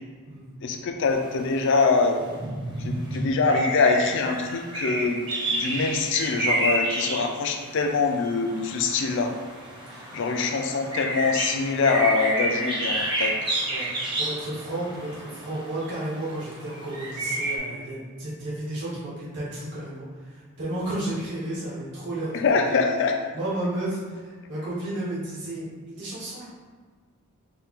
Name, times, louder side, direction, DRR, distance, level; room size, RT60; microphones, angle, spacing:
voice 1, 0.6-2.2 2.8-5.2 5.5-9.3 10.1-13.3 22.3-23.2, left 4 dB, 55° left, 4 dB, 0.4 m, -24 dB
sound 1, 1.0-17.6, right 1 dB, 20° right, 0.8 m, -30 dB
voice 2, 14.2-22.6 23.3-26.4, right 1 dB, 55° right, -8 dB, 1.4 m, -32 dB
4.1 x 2.3 x 3.7 m, 1.5 s
head